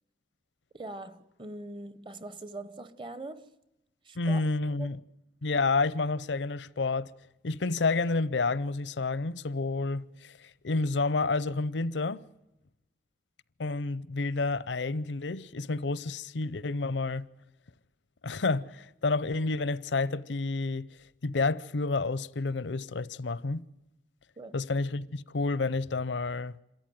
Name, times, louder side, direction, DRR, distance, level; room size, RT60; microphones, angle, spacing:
voice 1, 0.7-3.6 4.0-4.4 4.8-4.9 24.4-24.6, right 2 dB, 25° right, 0.9 m, -42 dB
voice 2, 4.2-5.0 5.4-7.1 7.4-12.2 13.6-17.3 18.2-21.0 21.2-23.7 24.5-26.5, left 3 dB, 85° left, 0.7 m, -30 dB
27.0 x 13.5 x 9.2 m
head